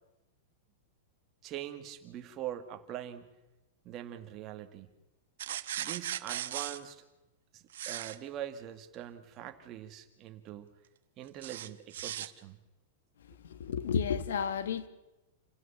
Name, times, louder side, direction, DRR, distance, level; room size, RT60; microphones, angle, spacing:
voice 1, 1.4-3.3 3.8-4.9 5.8-7.0 7.5-10.7 11.2-12.6, right 11 dB, 25° right, 1.9 m, -43 dB
sound 1, 5.4-6.8 7.7-8.2 11.4-12.3, right 11 dB, 75° right, 1.2 m, -37 dB
voice 2, 13.3-14.9, left 7 dB, 90° left, 1.5 m, -32 dB
28.5 x 16.0 x 7.3 m
supercardioid pair, 165°, 0 cm